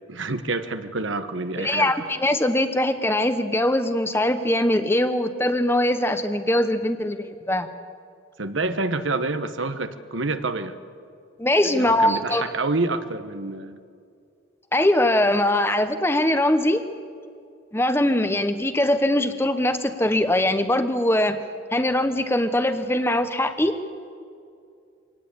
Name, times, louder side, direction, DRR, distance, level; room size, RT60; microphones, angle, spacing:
voice 1, 0.1-2.1 8.4-10.7 11.6-13.8, right 3 dB, 85° right, 9 dB, 1.3 m, -27 dB
voice 2, 1.6-7.7 11.4-12.5 14.7-16.9 17.7-21.4 21.7-23.8, left 1 dB, 10° left, 9 dB, 1.0 m, -22 dB
24.5 x 18.5 x 8.6 m, 2.3 s
head